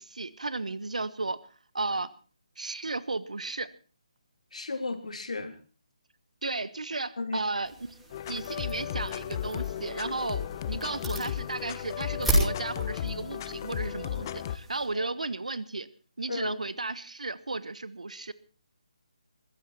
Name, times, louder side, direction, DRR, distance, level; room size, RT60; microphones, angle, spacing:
voice 1, 0.0-1.4 1.7-2.1 2.6-3.7 6.4-7.7 8.3-15.9 16.2-18.3, right 3 dB, 75° right, 17 dB, 1.3 m, -34 dB
voice 2, 4.5-5.6 7.2-7.5 14.9-15.1 16.3-16.6, left 3 dB, 70° left, 8 dB, 3.0 m, -34 dB
sound 1, 7.6-14.9, equal, 5° right, 7.3 m, -35 dB
sound 2, 8.1-14.6, left 11 dB, 30° left, 0.8 m, -34 dB
21.5 x 15.5 x 4.3 m, 0.36 s
figure-of-eight pair, 150°, 4 cm